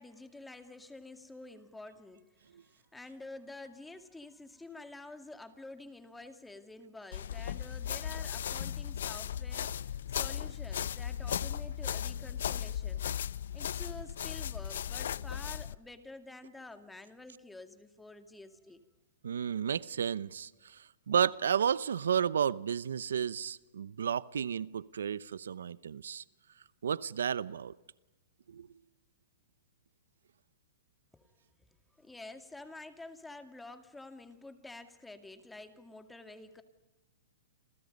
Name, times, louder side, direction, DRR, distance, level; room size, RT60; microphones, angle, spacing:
voice 1, 0.0-2.3 2.5-13.0 13.5-18.8 31.1-31.3 32.0-36.6, left 2 dB, 5° left, 2.3 m, -49 dB
sound 1, 7.1-15.8, left 9 dB, 75° left, 0.7 m, -36 dB
voice 2, 19.2-26.2 26.8-27.7 28.5-28.7, right 8 dB, 85° right, 0.7 m, -32 dB
29.0 x 28.0 x 5.4 m
hypercardioid pair, 140°, 0 cm